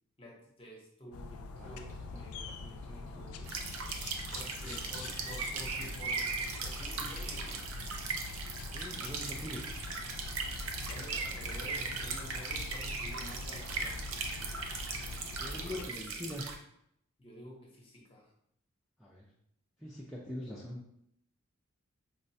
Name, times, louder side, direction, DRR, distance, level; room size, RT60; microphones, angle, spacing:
voice 1, 0.2-3.5 4.3-7.6 10.9-14.3 15.4-16.3 17.2-18.3 20.2-20.4, equal, 25° left, -2 dB, 0.7 m, -50 dB
sound 1, 1.1-15.9, left 3 dB, 85° left, 0.3 m, -44 dB
sound 2, 1.5-7.0, equal, 35° right, 0.7 m, -58 dB
sound 3, 3.5-16.5, right 4 dB, 75° right, 0.5 m, -38 dB
voice 2, 8.7-9.7 15.4-16.5 19.0-19.2 19.8-20.8, left 1 dB, ahead, -7 dB, 0.3 m, -42 dB
4.6 x 2.1 x 2.6 m, 0.74 s
head